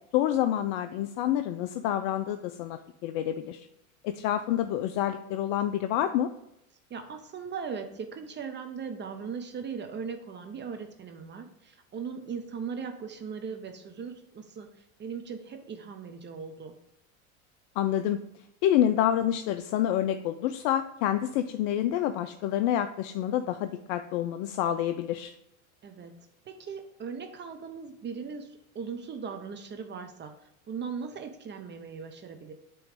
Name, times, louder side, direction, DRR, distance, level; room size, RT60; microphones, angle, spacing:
voice 1, 0.1-3.7 4.0-6.3 17.8-18.2 18.6-25.3, left 11 dB, 55° left, 9 dB, 0.5 m, -28 dB
voice 2, 6.9-16.8 25.8-26.1 26.5-32.5, right 6 dB, 25° right, 6 dB, 0.7 m, -39 dB
8.0 x 3.1 x 5.1 m, 0.83 s
hypercardioid pair, 100°, 43 cm